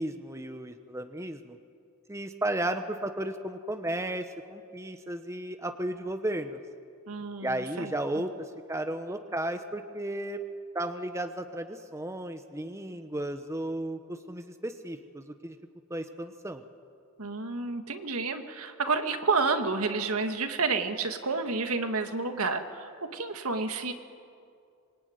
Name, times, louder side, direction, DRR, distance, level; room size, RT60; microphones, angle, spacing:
voice 1, 0.0-1.6 2.1-6.6 7.4-10.4 10.7-15.6 15.9-16.6, right 1 dB, 15° right, 8 dB, 0.9 m, -34 dB
voice 2, 7.1-7.9 17.2-23.9, right 4 dB, 80° right, 7 dB, 1.9 m, -30 dB
25.5 x 22.0 x 9.5 m, 2.4 s
head